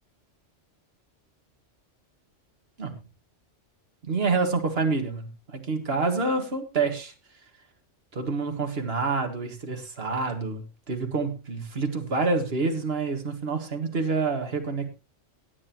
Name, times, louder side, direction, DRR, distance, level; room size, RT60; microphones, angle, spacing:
voice 1, 4.1-7.1 8.1-10.6 10.9-14.9, right 4 dB, 55° right, 5 dB, 2.1 m, -27 dB
17.5 x 9.8 x 3.1 m, 0.29 s
omnidirectional pair, 1.2 m